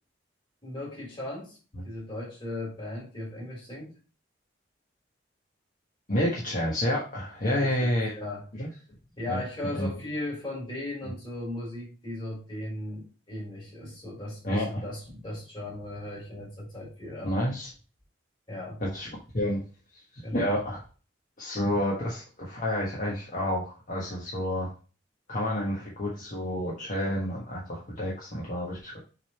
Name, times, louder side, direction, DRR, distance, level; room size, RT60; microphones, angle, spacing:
voice 1, 0.6-1.6 1.8-3.9 7.4-8.4 9.2-17.3 18.5-18.8 20.2-20.6, left 1 dB, 25° left, -4 dB, 3.3 m, -37 dB
voice 2, 6.1-8.1 8.5-8.7 9.3-9.4 9.7-9.9 14.4-14.8 17.2-17.7 18.8-19.6 20.1-20.8 21.4-24.7 25.3-29.0, left 1 dB, 45° left, -4 dB, 1.4 m, -29 dB
6.6 x 3.6 x 4.3 m, 0.36 s
head